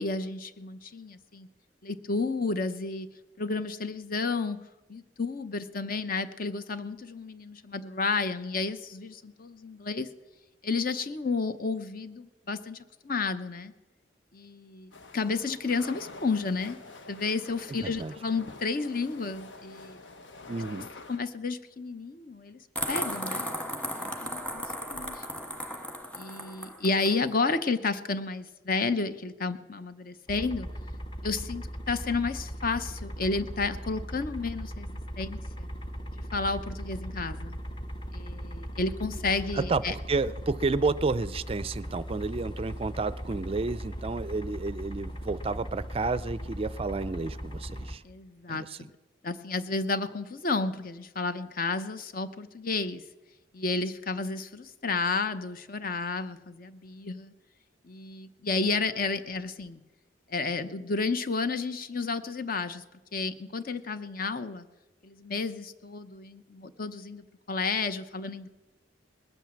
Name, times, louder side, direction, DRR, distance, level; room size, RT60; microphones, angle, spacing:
voice 1, 0.0-1.5 1.8-3.1 3.4-4.6 4.9-10.1 10.6-12.8 13.0-13.7 14.3-16.8 17.1-20.0 21.1-22.6 22.9-23.5 24.0-25.2 26.2-30.7 31.2-35.7 36.3-37.6 38.1-39.9 48.0-48.9 49.2-53.0 53.5-57.3 57.9-59.8 60.3-62.8 63.1-64.6 65.0-68.5, left 4 dB, 50° left, 11 dB, 0.9 m, -31 dB
sound 1, 14.9-21.2, left 3 dB, 85° left, 1.4 m, -47 dB
voice 2, 17.8-18.1 20.5-20.9 39.5-48.0 48.5-48.8, right 3 dB, 30° right, 16 dB, 0.4 m, -31 dB
sound 2, 22.8-27.2, equal, 5° left, 1.5 m, -35 dB
sound 3, 30.3-48.0, equal, 25° left, 1.0 m, -38 dB
20.0 x 9.0 x 7.6 m, 1.1 s
head